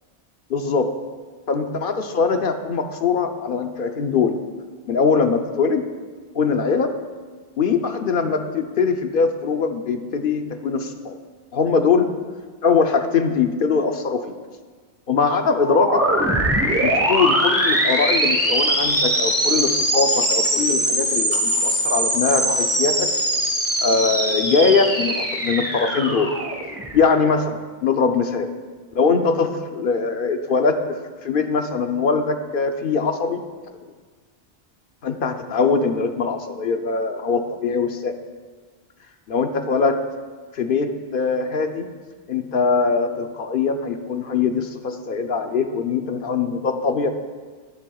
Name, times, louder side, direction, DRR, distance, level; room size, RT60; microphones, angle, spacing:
voice 1, 0.5-0.9 1.5-4.4 4.9-5.8 6.3-6.9 7.6-11.2 11.5-12.1 12.6-14.3 15.1-16.0 16.8-23.1 23.8-26.3 26.9-28.5 28.9-33.4 35.0-38.1 39.3-40.0 40.5-41.9 42.3-47.1, left 5 dB, 55° left, 6 dB, 0.8 m, -22 dB
sound 1, 15.6-27.3, right 1 dB, 15° right, 1.2 m, -21 dB
19.0 x 7.4 x 2.4 m, 1.4 s
omnidirectional pair, 1.2 m